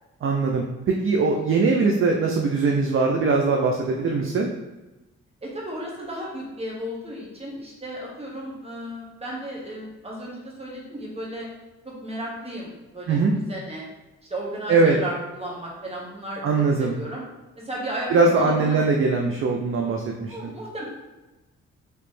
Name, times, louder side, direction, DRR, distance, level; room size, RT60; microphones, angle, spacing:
voice 1, 0.2-4.5 13.1-13.4 14.7-15.0 16.4-16.9 18.1-20.5, right 4 dB, 45° right, 1 dB, 0.5 m, -21 dB
voice 2, 5.4-11.5 11.8-13.8 14.3-17.2 17.5-18.8 20.3-20.8, right 1 dB, 20° right, -4 dB, 1.3 m, -34 dB
3.1 x 2.9 x 3.1 m, 1.1 s
cardioid pair, 70°, 30 cm